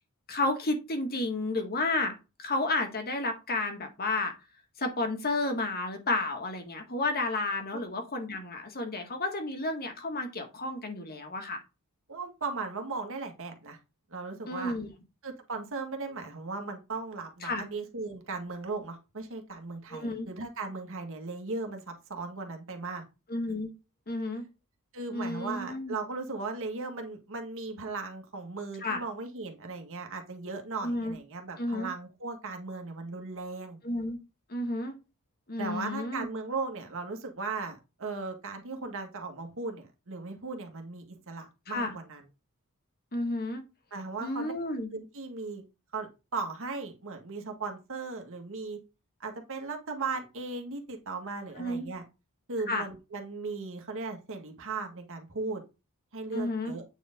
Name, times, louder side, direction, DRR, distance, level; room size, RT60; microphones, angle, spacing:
voice 1, 0.3-4.3 4.8-11.6 14.5-14.9 17.4-17.6 19.9-20.3 23.3-23.7 24.1-24.4 25.1-26.0 28.8-29.0 30.8-31.2 31.6-31.9 33.8-34.2 34.5-34.9 35.5-36.3 41.7-41.9 43.1-43.6 44.2-44.9 51.6-51.9 52.7-52.8 56.3-56.7, left 2 dB, 45° left, 5 dB, 1.8 m, -31 dB
voice 2, 12.1-13.8 14.1-14.7 15.2-23.0 24.9-33.8 35.6-42.2 43.9-44.5 44.9-45.6 45.9-48.8 49.2-52.0 52.5-55.6 56.1-56.8, right 3 dB, 65° right, 4 dB, 1.7 m, -37 dB
8.9 x 4.5 x 3.7 m, 0.27 s
head